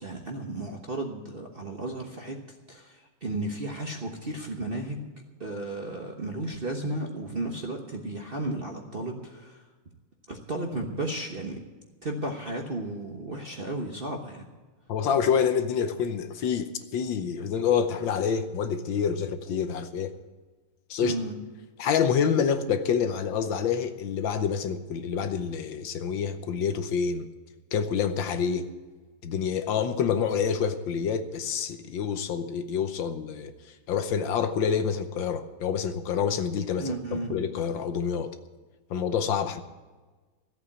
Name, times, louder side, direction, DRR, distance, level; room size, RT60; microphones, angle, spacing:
voice 1, 0.0-2.4 2.7-5.1 5.4-9.6 10.3-11.6 12.0-14.5 21.0-21.4 36.8-37.4, right 2 dB, 35° right, 2 dB, 1.0 m, -34 dB
voice 2, 14.9-20.1 20.9-21.1 21.8-27.3 27.7-28.7 29.2-33.5 33.9-38.3 38.9-39.6, left 7 dB, 70° left, 9 dB, 1.5 m, -27 dB
14.0 x 8.2 x 8.5 m, 1.3 s
omnidirectional pair, 2.3 m